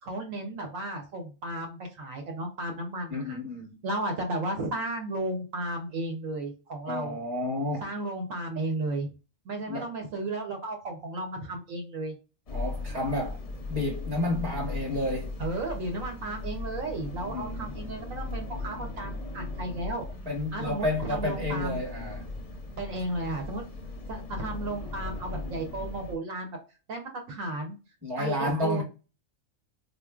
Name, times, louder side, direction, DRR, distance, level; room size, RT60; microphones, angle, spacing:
voice 1, 0.0-3.4 3.8-7.2 7.8-9.1 9.4-12.1 15.4-20.1 20.5-21.8 22.8-23.6 24.1-26.6 26.9-27.8 28.2-28.8, right 2 dB, 75° right, 1.1 m, -34 dB
voice 2, 3.1-3.8 6.9-7.9 9.7-9.9 12.5-13.4 13.7-15.3 17.3-17.7 20.3-22.2 28.0-28.8, left 1 dB, 20° right, 1.0 m, -30 dB
sound 1, 12.5-26.1, left 3 dB, 45° left, 0.5 m, -38 dB
3.8 x 2.5 x 2.3 m
omnidirectional pair, 1.4 m